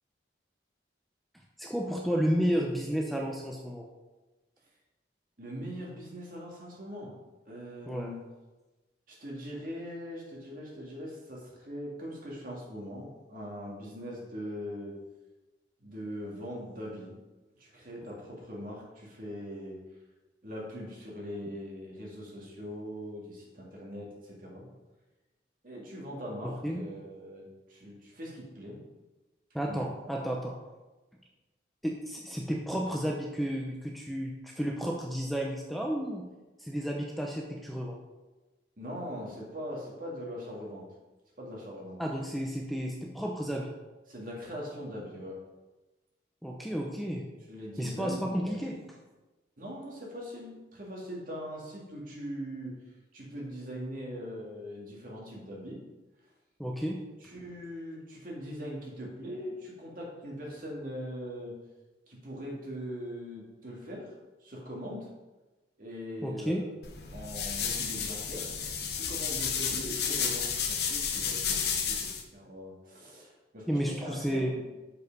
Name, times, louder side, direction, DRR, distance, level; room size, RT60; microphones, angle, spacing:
voice 1, 1.6-3.9 7.9-8.1 26.6-26.9 29.5-30.5 31.8-36.3 36.6-38.0 42.0-43.7 46.4-47.3 47.8-48.8 56.6-57.1 66.2-66.7 73.7-74.5, equal, ahead, 0 dB, 0.5 m, -32 dB
voice 2, 5.4-7.2 7.5-8.2 9.1-15.0 15.8-17.1 17.6-19.8 20.4-24.7 25.6-28.8 29.6-30.1 38.8-40.8 41.4-42.0 44.1-45.4 47.5-48.7 49.6-52.8 53.1-55.8 57.2-61.6 62.1-64.1 64.4-65.1 65.8-66.7 67.1-68.5 68.9-74.6, equal, 50° right, -3 dB, 2.1 m, -41 dB
sound 1, 66.8-72.2, left 7 dB, 60° left, 0.9 m, -32 dB
6.4 x 5.4 x 5.2 m, 1.1 s
head